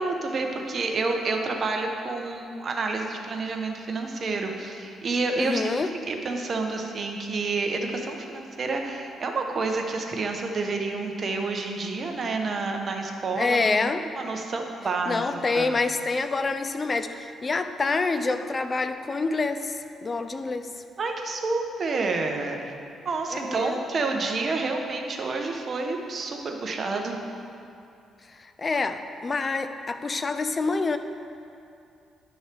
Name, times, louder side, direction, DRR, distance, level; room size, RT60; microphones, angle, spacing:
voice 1, 0.0-5.6 6.1-13.9 14.2-15.2 15.5-15.8 21.0-22.7 23.0-27.2, right 3 dB, 45° right, 3 dB, 1.0 m, -29 dB
voice 2, 5.4-5.9 13.4-14.1 15.1-20.7 23.3-23.8 28.6-31.0, left 3 dB, 35° left, 10 dB, 0.5 m, -27 dB
11.0 x 6.2 x 3.4 m, 2.6 s
cardioid pair, 90°, 0 cm